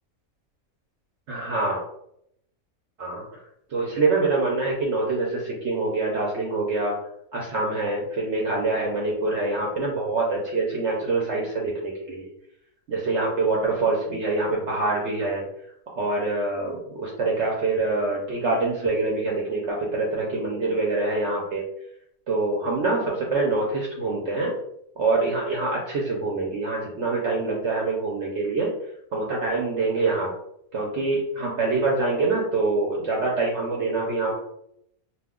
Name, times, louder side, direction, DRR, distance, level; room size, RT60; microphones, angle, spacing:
voice 1, 1.3-1.8 3.0-3.2 3.7-7.0 7.3-12.3 12.9-15.4 16.0-21.6 22.3-24.5 25.0-28.7 29.1-30.3 30.7-34.4, right 3 dB, 60° right, -2 dB, 0.8 m, -25 dB
2.4 x 2.2 x 3.5 m, 0.74 s
omnidirectional pair, 1.5 m